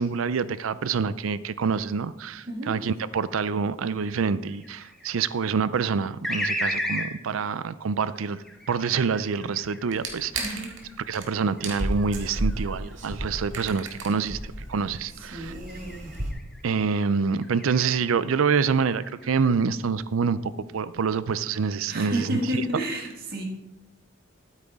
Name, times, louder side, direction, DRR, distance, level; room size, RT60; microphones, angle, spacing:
voice 1, 0.0-10.5 11.1-15.5 16.6-22.4, right 5 dB, 80° right, 16 dB, 0.5 m, -26 dB
voice 2, 2.5-2.8 10.4-10.8 15.1-16.1 21.9-23.5, right 1 dB, 45° right, 1 dB, 1.8 m, -31 dB
sound 1, 4.5-5.2 6.2-7.1 8.1-10.0 10.7-14.0 14.4-14.8 15.7-16.6 17.3-18.1 18.5-19.5, left 1 dB, ahead, 1.2 m, -35 dB
sound 2, 9.9-10.8 11.1-11.3 11.6-16.3, right 1 dB, 65° right, 1.9 m, -33 dB
12.5 x 8.9 x 3.6 m, 0.95 s
head